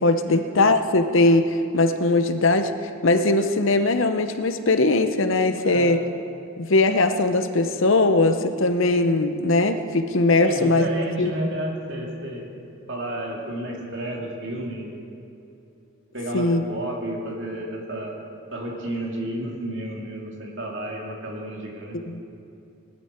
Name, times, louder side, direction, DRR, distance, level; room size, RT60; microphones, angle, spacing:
voice 1, 0.0-2.7 3.0-6.0 6.6-10.9 11.2-11.3 16.3-16.6 21.9-22.2, left 2 dB, 60° left, 8 dB, 0.8 m, -20 dB
voice 2, 10.4-12.5 12.9-15.0 16.1-18.2 18.5-22.0, right 1 dB, 55° right, -1 dB, 2.4 m, -31 dB
19.0 x 12.0 x 4.4 m, 2.7 s
head